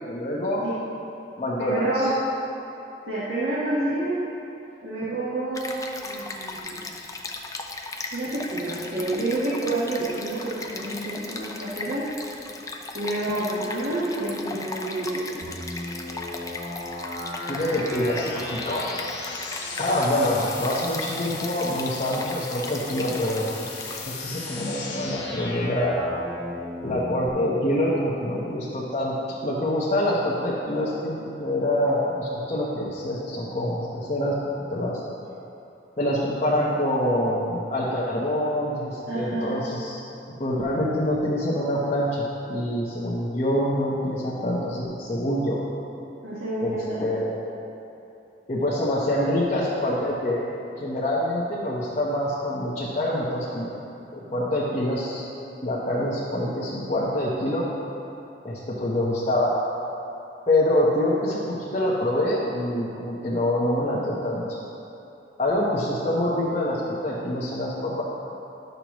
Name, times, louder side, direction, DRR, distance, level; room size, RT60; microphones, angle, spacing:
voice 1, 0.1-0.6 1.4-2.1 17.4-18.8 19.8-23.5 24.1-26.1 26.8-34.4 34.7-35.0 36.0-40.0 40.3-45.6 46.6-47.3 48.5-50.4 50.7-53.7 54.1-55.2 55.6-57.6 58.4-59.5 60.5-64.6 65.4-68.0, left 1 dB, 40° left, -8 dB, 1.0 m, -25 dB
voice 2, 1.6-2.1 3.1-4.2 4.8-6.8 8.1-12.0 12.9-15.5 39.1-39.6 46.2-47.2, right 2 dB, 75° right, -10 dB, 1.4 m, -28 dB
Stream, 5.5-24.0, left 3 dB, 20° left, 0.5 m, -37 dB
sound 1, 15.4-27.3, left 2 dB, 80° left, 1.5 m, -36 dB
11.5 x 6.6 x 3.0 m, 2.9 s
head